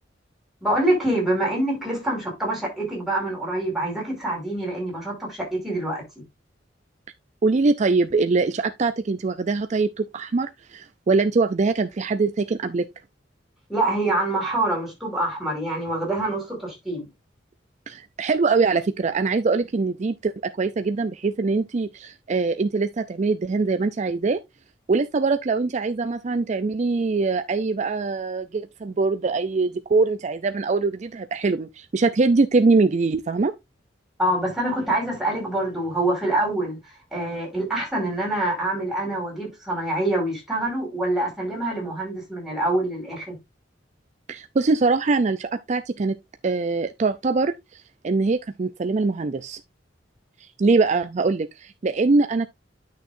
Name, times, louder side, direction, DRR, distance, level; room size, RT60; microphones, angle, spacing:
voice 1, 0.6-6.0 13.7-17.1 34.2-36.8 37.1-43.3, right 1 dB, ahead, 5.0 m, -25 dB
voice 2, 7.4-12.9 17.9-24.4 24.9-33.5 44.3-46.2 46.4-49.6 50.4-52.5, right 3 dB, 40° right, 0.4 m, -23 dB
10.5 x 6.4 x 2.6 m
head